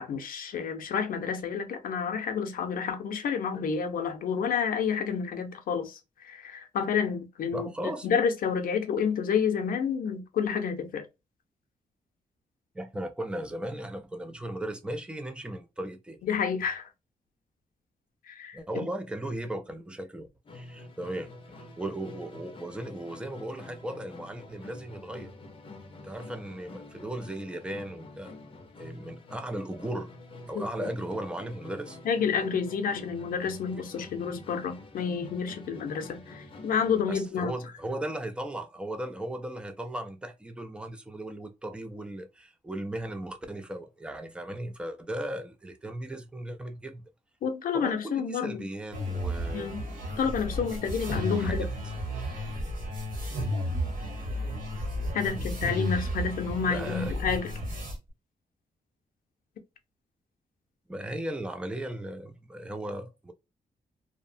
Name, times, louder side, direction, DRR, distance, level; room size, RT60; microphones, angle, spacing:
voice 1, 0.0-7.7 8.0-11.0 16.2-16.9 18.3-18.9 30.6-30.7 32.0-37.5 47.4-48.6 49.5-49.8 50.2-51.7 55.1-57.5, left 6 dB, 75° left, 0.6 m, -29 dB
voice 2, 7.5-8.1 12.7-16.2 18.5-21.3 21.8-25.3 26.0-28.3 28.8-30.1 30.5-32.0 37.1-47.0 47.7-49.8 51.3-51.7 55.2-55.6 56.7-57.4 60.9-63.3, right 1 dB, 5° right, 0.4 m, -37 dB
Musical instrument, 20.4-37.1, left 2 dB, 35° left, 0.6 m, -47 dB
sound 1, 48.9-57.9, equal, 75° right, 1.1 m, -33 dB
2.8 x 2.1 x 2.5 m
wide cardioid pair, 145°, 15 cm